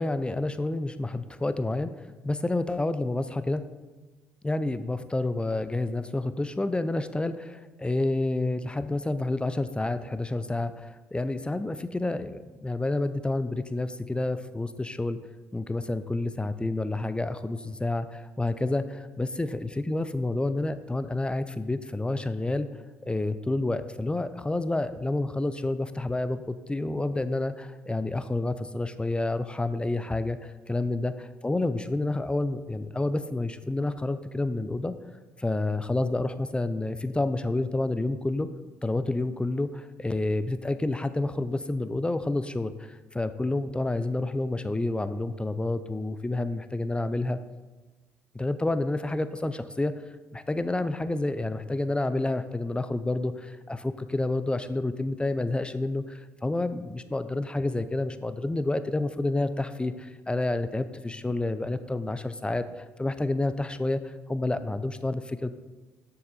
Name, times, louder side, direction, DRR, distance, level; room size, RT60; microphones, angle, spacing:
voice 1, 0.0-1.9 2.2-3.6 4.4-15.2 15.5-22.7 23.0-31.1 31.4-34.9 35.4-38.5 38.8-47.4 48.3-49.9 50.3-65.5, left 2 dB, 10° left, 12 dB, 0.6 m, -29 dB
6.7 x 6.6 x 4.2 m, 1.2 s
hypercardioid pair, 50°, 8 cm